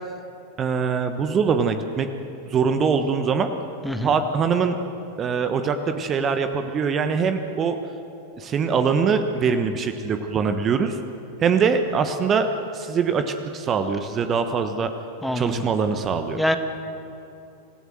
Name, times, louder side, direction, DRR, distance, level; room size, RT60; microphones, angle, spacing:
voice 1, 0.6-2.1 2.5-3.5 4.0-4.8 5.2-7.8 8.4-11.0 11.4-12.5 12.7-14.9 15.3-16.4, right 6 dB, 25° right, 8 dB, 1.2 m, -23 dB
voice 2, 15.2-15.7 16.4-16.6, equal, ahead, 7 dB, 1.5 m, -24 dB
26.0 x 16.0 x 7.7 m, 2.8 s
figure-of-eight pair, 90°, 0 cm